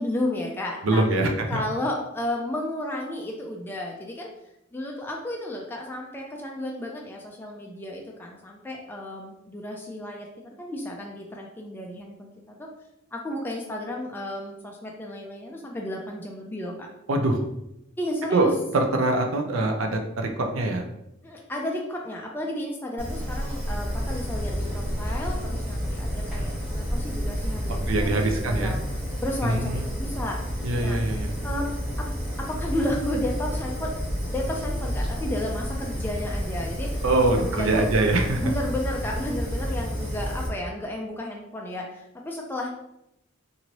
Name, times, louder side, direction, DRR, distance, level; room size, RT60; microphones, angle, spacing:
voice 1, 0.0-4.3 4.7-12.7 13.1-16.9 18.0-18.5 21.2-28.8 29.2-31.0 31.4-32.1 32.4-34.0 34.3-37.0 37.4-37.9 38.4-42.7, left 1 dB, 10° left, -1 dB, 0.3 m, -33 dB
voice 2, 0.8-1.6 17.1-17.4 18.3-20.8 27.7-28.8 29.4-29.9 30.6-31.3 37.0-38.4, right 2 dB, 75° right, 3 dB, 0.5 m, -24 dB
Fire, 23.0-40.5, equal, 10° right, 0.9 m, -30 dB
2.9 x 2.6 x 2.9 m, 0.84 s
head